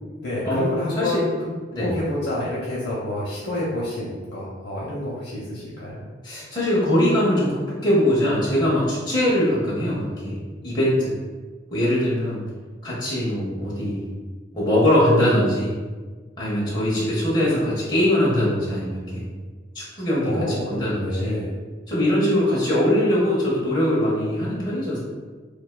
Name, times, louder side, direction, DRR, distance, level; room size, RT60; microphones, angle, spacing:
voice 1, 0.2-1.5 1.8-6.1 20.2-21.5, left 1 dB, 55° left, -6 dB, 0.7 m, -28 dB
voice 2, 6.2-11.1 11.7-12.4 12.8-14.1 14.5-15.7 16.4-19.2 19.7-21.4 21.9-25.0, left 1 dB, 20° left, -8 dB, 0.8 m, -22 dB
6.7 x 2.4 x 2.2 m, 1.4 s
head